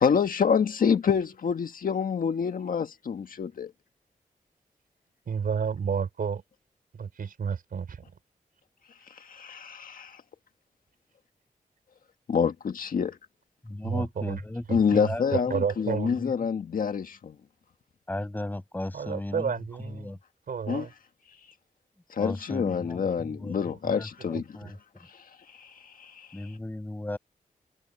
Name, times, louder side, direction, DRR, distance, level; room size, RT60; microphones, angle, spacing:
voice 1, 0.0-3.7 9.2-10.2 12.3-13.2 14.7-17.3 20.7-20.9 22.1-24.6 25.6-26.3, left 6 dB, 75° left, 1.7 m, -27 dB
voice 2, 5.3-6.4 6.9-8.0 13.8-14.4 14.7-16.2 18.9-20.2 20.5-20.9 24.3-24.7, right 6 dB, 85° right, 4.8 m, -31 dB
voice 3, 13.7-14.6 15.1-15.4 18.1-19.4 20.0-20.2 22.2-23.0 23.4-23.5 24.0-24.7 26.3-27.2, left 1 dB, 10° left, 7.1 m, -35 dB
wide cardioid pair, 180°, 14 cm